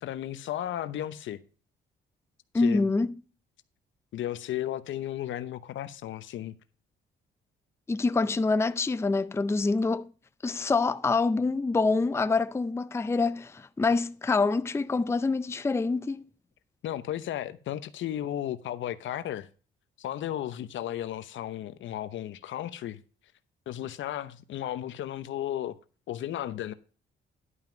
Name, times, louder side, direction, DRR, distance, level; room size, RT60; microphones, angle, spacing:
voice 1, 0.0-1.4 2.5-2.9 4.1-6.5 16.8-19.5 20.0-23.0 23.7-25.8 26.1-26.7, left 12 dB, 75° left, 0.8 m, -34 dB
voice 2, 2.5-3.1 7.9-10.1 10.4-16.2, left 3 dB, 15° left, 0.5 m, -26 dB
11.0 x 5.8 x 5.1 m
cardioid pair, 90°, 20 cm